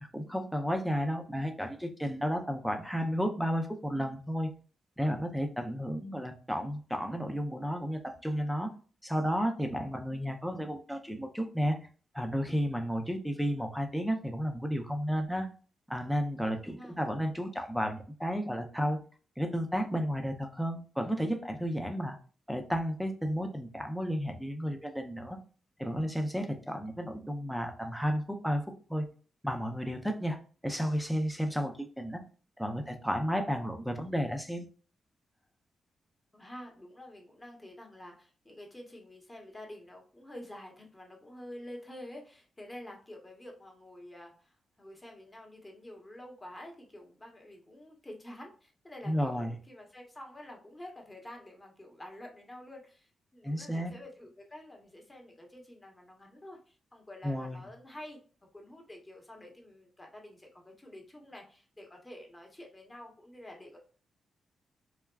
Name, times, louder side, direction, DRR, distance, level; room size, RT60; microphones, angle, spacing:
voice 1, 0.1-4.5 5.0-8.7 9.0-11.8 12.1-15.5 15.9-19.0 19.4-22.2 22.5-25.4 25.8-28.6 28.9-29.1 29.4-30.4 30.6-32.2 32.6-34.7 49.1-49.6 53.4-53.9 57.2-57.7, equal, ahead, 5 dB, 0.6 m, -32 dB
voice 2, 16.4-17.0 32.8-32.9 36.3-58.2 58.5-63.8, left 1 dB, 20° left, 1 dB, 1.1 m, -49 dB
3.4 x 2.2 x 2.3 m, 0.39 s
cardioid pair, 60°, 0 cm